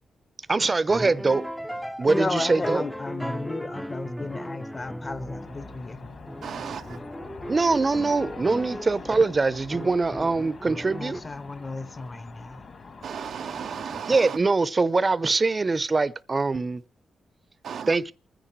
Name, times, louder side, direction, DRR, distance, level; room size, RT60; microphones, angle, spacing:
voice 1, 0.5-1.4 2.0-2.8 7.5-11.2 14.1-16.8 17.9-18.1, right 3 dB, 30° right, 0.7 m, -23 dB
sound 1, 0.9-5.9 6.3-9.0 9.7-11.2, equal, ahead, 0.6 m, -36 dB
voice 2, 2.0-6.2 10.9-12.6, left 3 dB, 30° left, 1.0 m, -34 dB
sound 2, 4.8-7.6, right 2 dB, 90° left, 1.8 m, -53 dB
sound 3, 5.4-14.0, left 4 dB, 55° left, 2.5 m, -44 dB
voice 3, 6.4-7.0 13.0-14.4 17.6-18.0, right 7 dB, 70° right, 0.6 m, -35 dB
28.0 x 10.0 x 3.1 m
cardioid pair, 80°, 0 cm